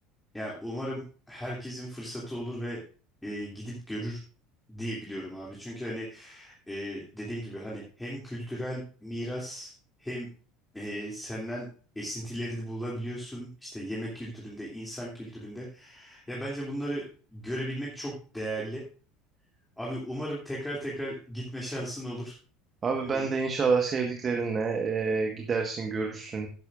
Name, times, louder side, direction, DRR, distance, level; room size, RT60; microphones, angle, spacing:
voice 1, 0.3-2.8 3.2-4.2 4.7-9.7 10.0-10.3 10.7-11.7 11.9-18.8 19.8-22.4 23.0-23.3, equal, 5° left, -4 dB, 2.9 m, -36 dB
voice 2, 22.8-26.5, right 5 dB, 30° right, 3 dB, 1.5 m, -28 dB
12.5 x 11.0 x 2.6 m, 0.39 s
figure-of-eight pair, 70°, 0 cm